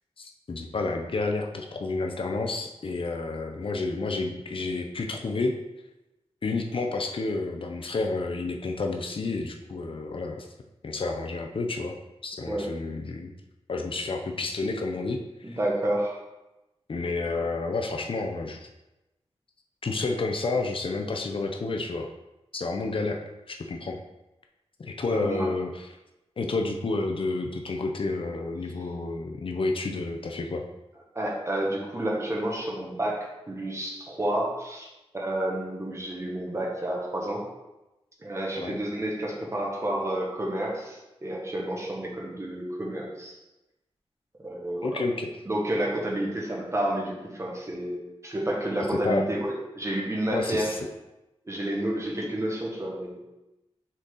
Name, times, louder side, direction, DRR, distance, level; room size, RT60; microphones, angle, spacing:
voice 1, 0.2-5.6 6.4-10.5 10.8-12.0 12.2-13.3 13.7-15.6 16.9-18.7 19.8-22.1 22.5-23.2 23.5-24.0 24.8-25.9 26.4-30.6 38.5-38.8 44.8-45.3 49.0-49.3 50.3-50.8, left 3 dB, 55° left, 3 dB, 0.6 m, -30 dB
voice 2, 12.4-12.7 15.4-16.2 25.1-25.5 31.1-34.9 35.1-37.4 38.2-43.4 44.4-44.9 45.4-50.7 51.5-53.2, right 1 dB, 25° right, -3 dB, 1.4 m, -30 dB
6.2 x 4.1 x 3.8 m, 0.98 s
wide cardioid pair, 110°, 11 cm